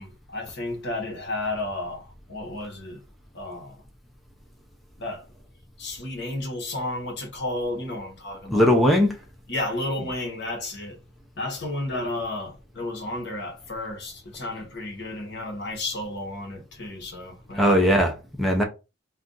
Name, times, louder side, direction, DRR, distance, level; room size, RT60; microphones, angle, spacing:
voice 1, 0.0-3.0 3.3-3.8 5.0-5.2 5.8-8.7 9.5-11.0 11.4-17.7, left 2 dB, 60° left, 1.0 m, -32 dB
voice 2, 8.5-9.2 17.5-18.6, equal, ahead, 0.5 m, -19 dB
2.5 x 2.3 x 3.7 m
head